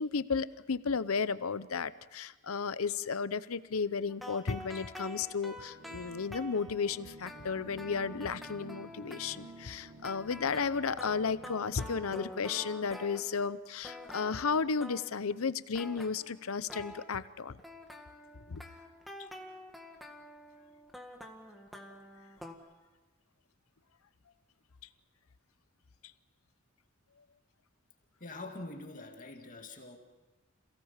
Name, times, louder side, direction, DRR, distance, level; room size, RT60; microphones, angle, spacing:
voice 1, 0.0-17.6 18.5-18.6, left 5 dB, 80° left, 15 dB, 0.7 m, -33 dB
sound 1, 4.1-13.6 13.8-15.3 15.7-17.1 17.6-22.5, left 1 dB, ahead, 1.8 m, -47 dB
sound 2, 5.0-12.0, right 3 dB, 60° right, 4.4 m, -53 dB
voice 2, 28.2-30.0, left 2 dB, 40° left, 3 dB, 2.1 m, -44 dB
27.5 x 17.0 x 7.3 m, 1.2 s
head